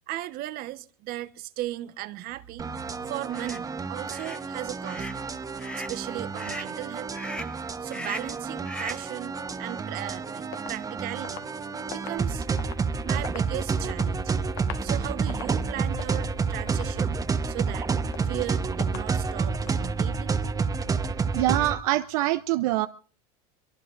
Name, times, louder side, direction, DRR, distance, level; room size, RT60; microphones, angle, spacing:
voice 1, 0.1-2.8 3.1-5.1 5.7-7.1 7.8-9.3 9.6-11.5 11.9-12.4 13.0-14.3 14.8-17.2 17.5-17.9 18.2-20.3, right 15 dB, 55° right, 1.2 m, -36 dB
sound 1, 2.6-21.8, right 5 dB, 20° right, 1.1 m, -29 dB
sound 2, 3.3-3.6 4.1-4.4 4.8-5.2 5.6-6.0 6.4-6.7 7.1-7.6 7.9-8.4 8.7-9.1, left 1 dB, 5° left, 0.9 m, -38 dB
sound 3, 10.5-12.9 13.2-14.2 14.5-14.9 15.2-15.6 16.0-16.3 16.7-17.0 17.4-17.8 18.1-18.5 18.8-19.2 19.5-19.9, left 13 dB, 65° left, 1.5 m, -43 dB
voice 2, 21.3-22.9, right 16 dB, 75° right, 0.7 m, -24 dB
23.5 x 23.0 x 2.6 m
supercardioid pair, 110°, 18 cm